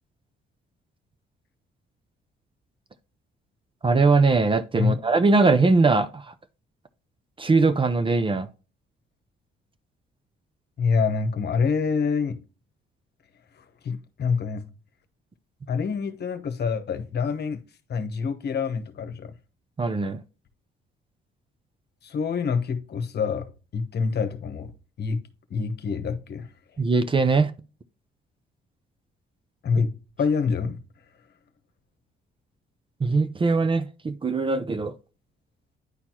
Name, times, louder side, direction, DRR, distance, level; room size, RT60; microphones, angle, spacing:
voice 1, 3.8-6.3 7.4-8.5 19.8-20.2 26.8-27.5 33.0-35.0, right 3 dB, 25° right, 0.6 m, -21 dB
voice 2, 10.8-12.4 13.5-14.6 15.7-17.6 17.9-19.3 22.0-24.7 25.0-26.5 29.6-30.8, left 5 dB, 55° left, 1.1 m, -26 dB
9.8 x 4.4 x 2.9 m
cardioid pair, 90°, 20 cm